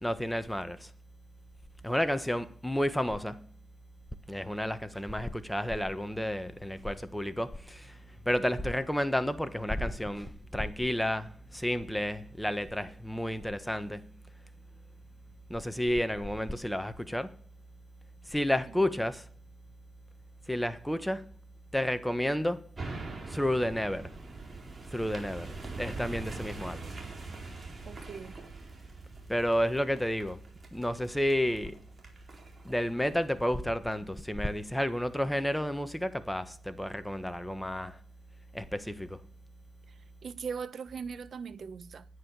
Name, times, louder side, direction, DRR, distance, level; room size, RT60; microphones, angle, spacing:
voice 1, 0.0-0.9 1.8-3.5 4.3-8.0 8.2-14.1 15.5-17.4 18.3-19.3 20.5-21.3 21.7-22.7 23.3-24.1 24.9-26.9 29.3-30.4 30.7-31.8 32.6-38.0 38.5-39.2, equal, 5° left, 1.4 m, -31 dB
sound 1, 22.8-34.2 34.7-34.8, right 3 dB, 25° right, 4.2 m, -43 dB
voice 2, 27.9-28.4 39.9-42.1, right 6 dB, 50° right, 1.2 m, -40 dB
11.0 x 9.5 x 7.0 m
cardioid pair, 90°, 0 cm